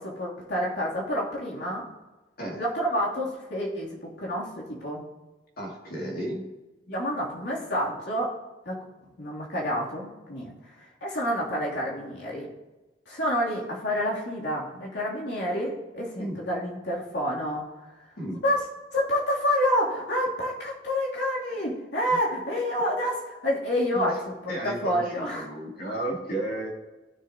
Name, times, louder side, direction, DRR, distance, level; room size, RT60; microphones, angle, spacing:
voice 1, 0.0-1.8 2.6-5.0 6.9-8.3 8.6-8.8 9.2-12.5 13.1-17.6 18.4-18.6 18.9-24.3 24.6-25.4, equal, 80° left, -5 dB, 3.0 m, -28 dB
voice 2, 5.6-6.4 16.2-16.4 18.2-18.4 22.1-22.2 23.9-24.1 24.5-26.7, right 1 dB, 60° left, -1 dB, 2.6 m, -33 dB
17.0 x 6.8 x 2.9 m, 1.1 s
head